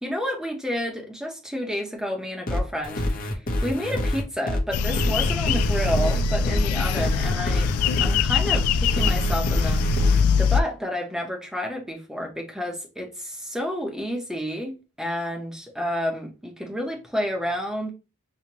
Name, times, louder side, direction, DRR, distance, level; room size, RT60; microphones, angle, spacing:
voice 1, 0.0-7.7 8.0-9.9 10.4-17.9, equal, ahead, 0.7 m, -30 dB
sound 1, 2.5-10.2, left 1 dB, 40° left, 0.7 m, -27 dB
sound 2, 4.7-10.6, left 5 dB, 85° left, 0.3 m, -23 dB
5.9 x 2.1 x 2.9 m
head